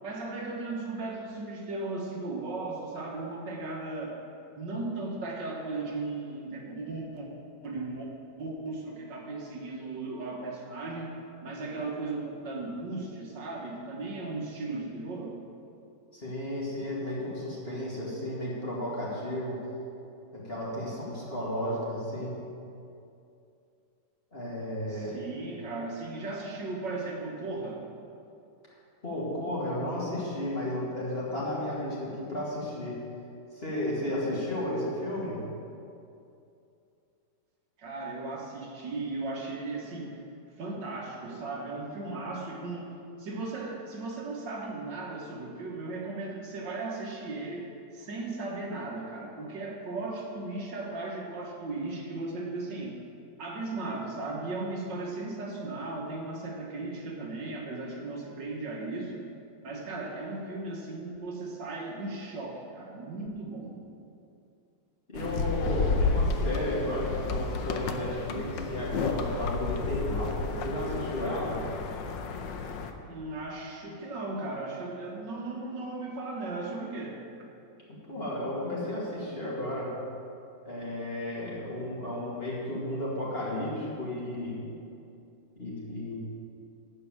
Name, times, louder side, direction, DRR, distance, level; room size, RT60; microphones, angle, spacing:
voice 1, 0.0-4.2 4.6-7.3 7.6-8.1 8.4-11.1 11.4-15.4 24.9-27.9 37.8-40.2 40.6-53.0 53.4-59.3 59.6-63.8 73.0-77.3, right 2 dB, 65° right, -1 dB, 1.9 m, -36 dB
voice 2, 16.1-19.6 20.3-22.4 24.3-25.1 29.0-33.0 33.5-35.4 65.1-71.6 77.9-79.9 80.6-84.6 85.6-86.2, left 1 dB, 30° left, -6 dB, 2.5 m, -33 dB
sound 1, 65.1-72.9, left 4 dB, 75° left, 1.4 m, -31 dB
12.5 x 4.7 x 8.7 m, 2.6 s
omnidirectional pair, 2.1 m